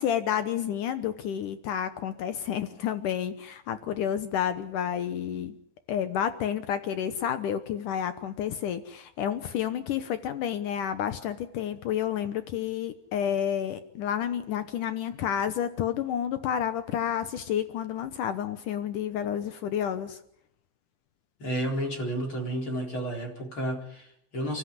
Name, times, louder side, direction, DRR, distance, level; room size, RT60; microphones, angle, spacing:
voice 1, 0.0-5.6 5.9-20.2, left 9 dB, 80° left, 11 dB, 1.8 m, -30 dB
voice 2, 21.4-24.6, right 1 dB, 30° left, 2 dB, 4.5 m, -31 dB
30.0 x 14.5 x 9.5 m, 0.75 s
omnidirectional pair, 5.3 m